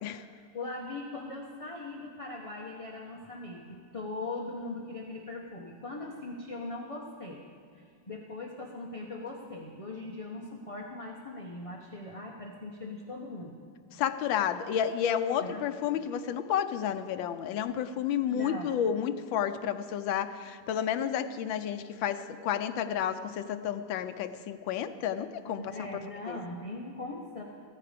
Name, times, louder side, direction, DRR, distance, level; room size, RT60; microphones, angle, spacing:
voice 1, 0.3-7.4 7.7-13.6 15.4-15.6 18.3-18.7 25.5-27.4, left 2 dB, 30° left, 0 dB, 0.7 m, -40 dB
voice 2, 13.9-25.7 26.3-26.4, left 9 dB, 85° left, 9 dB, 1.4 m, -31 dB
15.0 x 14.5 x 5.1 m, 2.3 s
omnidirectional pair, 2.1 m